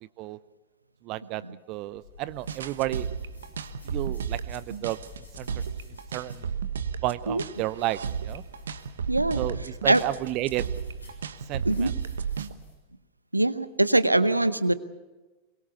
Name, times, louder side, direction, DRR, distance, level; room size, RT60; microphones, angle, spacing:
voice 1, 1.0-1.4 1.7-3.1 3.8-5.0 5.4-5.5 6.1-6.5 7.0-8.4 9.4-10.7 11.5-11.9, right 16 dB, 40° right, 17 dB, 0.6 m, -31 dB
sound 1, 1.9-12.8, left 3 dB, 80° left, 7.3 m, -48 dB
sound 2, 2.5-12.5, right 7 dB, 65° right, 1.1 m, -33 dB
voice 2, 9.1-10.0 11.6-11.9 13.3-14.7, right 2 dB, 85° right, 15 dB, 0.9 m, -23 dB
22.5 x 22.5 x 6.9 m, 1.2 s
figure-of-eight pair, 90°, 0 cm